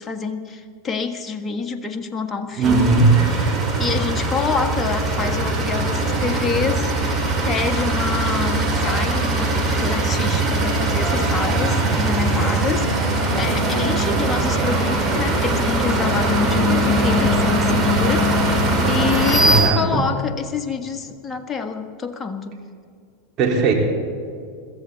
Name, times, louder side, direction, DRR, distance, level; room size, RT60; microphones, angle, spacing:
voice 1, 0.0-3.0 3.4-3.5 3.8-7.2 7.4-18.5 18.9-22.7, left 5 dB, 20° left, 5 dB, 1.7 m, -27 dB
sound 1, 2.6-19.6, right 1 dB, 25° right, 5.1 m, -20 dB
voice 2, 2.6-3.1 19.4-20.1 23.4-23.7, right 3 dB, 40° right, -1 dB, 4.4 m, -17 dB
22.5 x 15.5 x 4.2 m, 2.3 s
hypercardioid pair, 95°, 0 cm